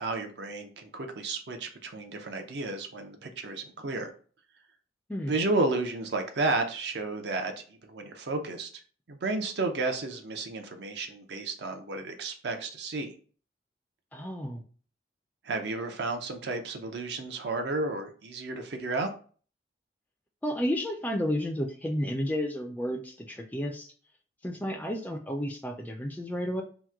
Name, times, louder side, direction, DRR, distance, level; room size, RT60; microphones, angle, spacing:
voice 1, 0.0-4.1 5.3-8.8 9.1-13.1 15.4-19.1, right 3 dB, 65° right, 5 dB, 0.6 m, -32 dB
voice 2, 14.1-14.6 20.4-23.9 24.4-26.6, equal, 10° left, 3 dB, 0.3 m, -32 dB
2.9 x 2.1 x 3.4 m, 0.41 s
head